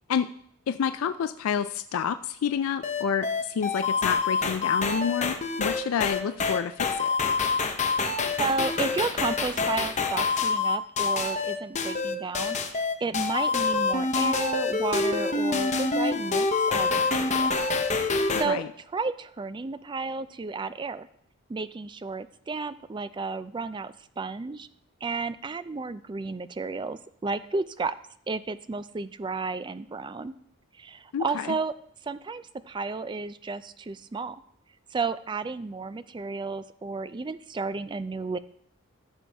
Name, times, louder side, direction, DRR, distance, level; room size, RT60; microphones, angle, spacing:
voice 1, 0.7-7.2 18.4-18.7 31.1-31.6, left 7 dB, 70° left, 10 dB, 0.3 m, -29 dB
sound 1, 2.8-18.5, left 4 dB, 35° left, 0.8 m, -26 dB
voice 2, 8.1-17.6 18.0-18.6 18.9-21.1 21.5-24.7 25.0-28.0 28.3-30.3 30.8-31.7 32.0-34.4 34.9-38.4, right 4 dB, 20° right, 14 dB, 0.3 m, -32 dB
14.5 x 6.3 x 3.4 m, 0.69 s
head